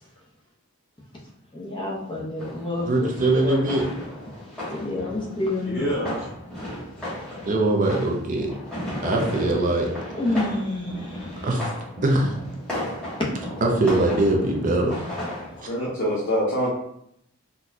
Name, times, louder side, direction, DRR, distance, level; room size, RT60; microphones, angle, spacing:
voice 1, 1.5-3.6 4.6-5.9 10.1-11.3, left 2 dB, 20° left, -4 dB, 0.7 m, -29 dB
sound 1, 2.4-15.7, left 1 dB, 5° left, 1.2 m, -35 dB
voice 2, 2.9-3.9 7.5-8.5 9.0-9.9 11.4-11.7 12.0-12.4 13.6-15.0, right 2 dB, 35° right, 1 dB, 0.4 m, -22 dB
voice 3, 5.6-6.3 15.7-16.7, equal, 55° left, -7 dB, 0.7 m, -25 dB
3.9 x 2.3 x 2.7 m, 0.75 s
head